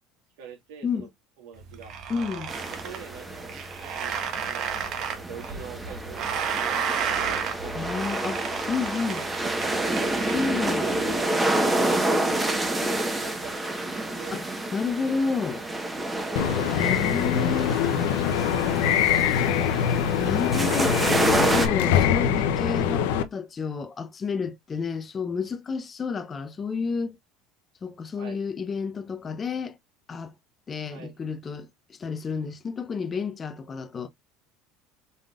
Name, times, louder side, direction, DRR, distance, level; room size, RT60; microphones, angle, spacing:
voice 1, 0.4-1.1 1.4-2.0 2.8-3.6 3.8-4.2 4.4-4.7 5.1-8.2 9.1-10.1 10.8-14.4 16.7-17.0 17.3-17.8 18.6-19.5 28.1-28.4 30.9-31.2, right 7 dB, 80° right, 2.4 m, -44 dB
sound 1, 1.6-11.2, right 7 dB, 50° right, 1.4 m, -32 dB
voice 2, 2.1-2.5 7.7-8.4 8.7-9.2 10.3-10.8 14.3-14.4 14.7-15.7 16.7-17.7 20.2-27.2 27.8-29.8 30.1-30.3 30.7-34.1, left 5 dB, 25° left, 0.7 m, -30 dB
sound 2, 2.5-21.7, right 1 dB, 15° right, 1.2 m, -29 dB
sound 3, 16.4-23.2, left 9 dB, 80° left, 0.7 m, -23 dB
5.3 x 3.7 x 2.4 m
supercardioid pair, 120°, 0 cm